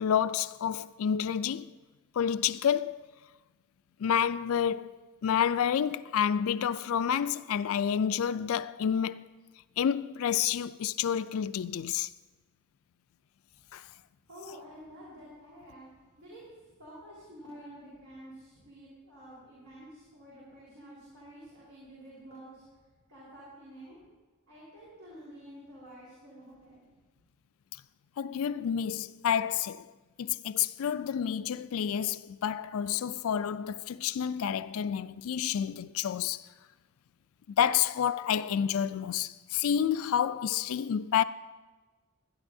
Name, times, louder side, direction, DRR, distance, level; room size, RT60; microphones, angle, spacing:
voice 1, 0.0-1.7 2.2-2.9 4.0-9.2 9.8-12.1 13.7-13.8 28.2-29.9 30.2-36.4 37.6-41.2, left 8 dB, 70° left, 0.3 m, -29 dB
voice 2, 13.5-13.9 14.3-22.7 23.1-24.0 24.5-26.8, equal, 70° right, 4.1 m, -50 dB
17.0 x 12.5 x 2.7 m
head